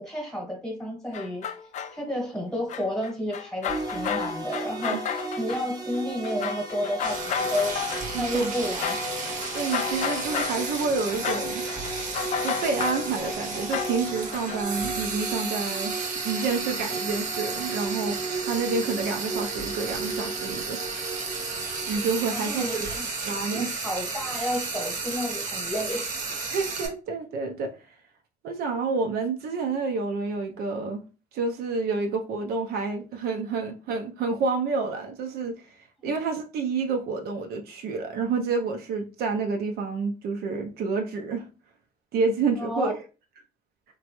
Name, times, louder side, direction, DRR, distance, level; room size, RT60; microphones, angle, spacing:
voice 1, 0.0-1.5 1.9-7.8 8.0-9.1 22.3-23.1 23.5-26.1 36.0-36.1 42.6-42.9, left 1 dB, 5° left, 1.1 m, -31 dB
sound 1, 1.1-2.0 2.7-5.7 5.9-14.6, left 8 dB, 45° left, 0.4 m, -33 dB
sound 2, 3.7-23.0, right 3 dB, 20° right, 0.7 m, -36 dB
Frying (food), 7.0-26.9, right 4 dB, 50° right, 0.8 m, -33 dB
voice 2, 8.1-8.5 9.5-11.6 12.4-20.8 21.9-22.9 23.2-23.7 26.5-27.7 28.4-31.0 31.3-41.5 42.1-43.0, right 4 dB, 70° right, 0.5 m, -29 dB
2.9 x 2.2 x 2.9 m
cardioid pair, 110°, 17 cm